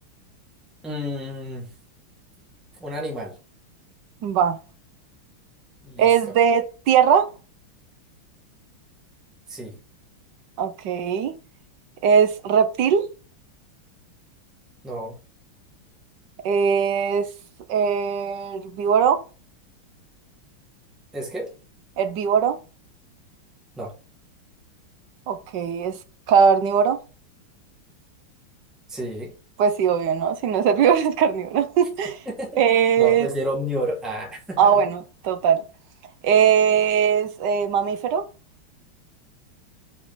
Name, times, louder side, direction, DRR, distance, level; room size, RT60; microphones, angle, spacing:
voice 1, 0.8-1.7 2.8-3.4 5.8-6.1 9.5-9.8 14.8-15.2 21.1-21.5 23.8-23.9 28.9-29.3 32.2-32.6 33.0-34.7, equal, ahead, 1.6 m, -30 dB
voice 2, 4.2-4.6 6.0-7.3 10.6-11.3 12.0-13.1 16.4-17.3 17.7-19.2 22.0-22.6 25.3-26.0 26.3-27.0 29.6-32.2 32.6-33.3 34.6-35.6 36.2-38.3, right 7 dB, 65° right, 1.2 m, -20 dB
5.2 x 5.0 x 5.0 m
omnidirectional pair, 2.3 m